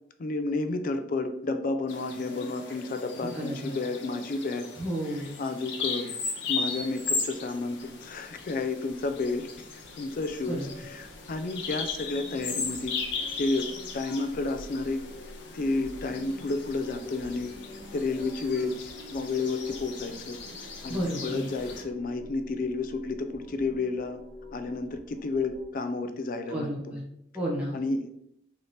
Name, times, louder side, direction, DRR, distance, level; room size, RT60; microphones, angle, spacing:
voice 1, 0.2-4.7 5.4-6.1 6.5-9.5 9.9-13.0 13.4-15.1 15.5-17.5 17.9-20.4 20.8-24.2 24.5-26.7 27.7-28.1, left 3 dB, 50° left, 8 dB, 0.4 m, -31 dB
Bird vocalization bird call bird song, 1.9-21.8, left 4 dB, 80° left, 0.7 m, -37 dB
voice 2, 3.2-3.7 4.8-5.4 10.5-10.7 20.9-21.5 26.5-27.0 27.3-27.8, equal, 5° right, -4 dB, 0.7 m, -32 dB
sound 1, 7.9-25.7, left 1 dB, 70° right, 1.0 m, -48 dB
3.2 x 2.8 x 4.0 m, 0.75 s
head